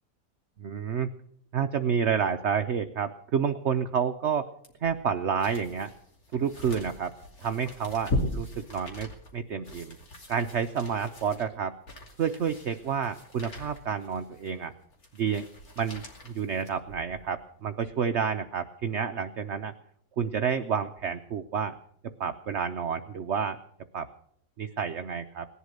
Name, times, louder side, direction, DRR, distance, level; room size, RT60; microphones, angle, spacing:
voice 1, 0.6-1.1 1.5-4.5 4.8-5.9 6.3-7.1 7.4-10.0 10.3-11.8 12.2-14.7 15.1-15.5 15.8-19.7 20.2-21.7 22.2-23.6 23.9-24.1 24.6-25.5, right 7 dB, 55° right, 7 dB, 0.8 m, -29 dB
sound 1, 4.6-17.3 17.8-17.9, left 2 dB, 55° left, 3.1 m, -39 dB
19.0 x 11.5 x 6.6 m, 0.66 s
omnidirectional pair, 1.9 m